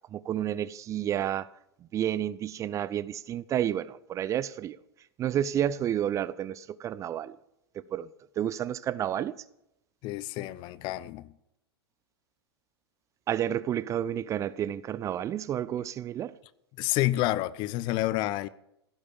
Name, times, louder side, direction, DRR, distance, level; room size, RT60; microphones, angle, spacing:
voice 1, 0.1-1.5 1.9-4.8 5.2-7.4 7.9-8.1 8.4-9.4 13.3-16.3, right 10 dB, 25° right, 0.5 m, -30 dB
voice 2, 10.0-11.3 16.8-18.5, left 16 dB, 35° left, 0.7 m, -29 dB
15.5 x 11.5 x 7.1 m
figure-of-eight pair, 100°, 14 cm